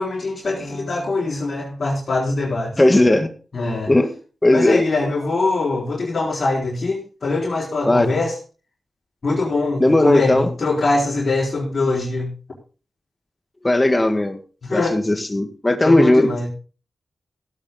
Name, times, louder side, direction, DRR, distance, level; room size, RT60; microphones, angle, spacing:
voice 1, 0.0-2.8 3.5-3.9 4.5-8.3 9.2-12.3 14.6-15.0 15.8-16.5, left 3 dB, 60° left, -4 dB, 4.6 m, -22 dB
voice 2, 2.8-3.3 3.9-4.2 4.4-4.8 7.8-8.1 9.8-10.5 13.6-14.4 14.7-16.3, left 1 dB, 25° left, 9 dB, 1.9 m, -16 dB
16.5 x 8.9 x 3.9 m, 0.36 s
cardioid pair, 60°, 0 cm